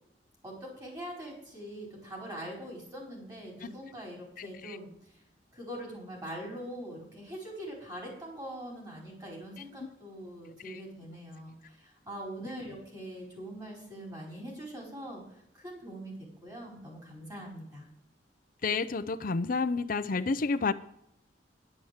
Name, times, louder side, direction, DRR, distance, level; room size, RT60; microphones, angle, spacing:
voice 1, 0.4-4.9 5.5-15.2 15.6-17.9, equal, 25° right, -1 dB, 4.8 m, -43 dB
voice 2, 4.4-4.8 10.6-10.8 12.4-12.5 18.6-20.7, left 4 dB, 55° left, 13 dB, 0.6 m, -30 dB
11.0 x 7.3 x 7.9 m, 0.77 s
head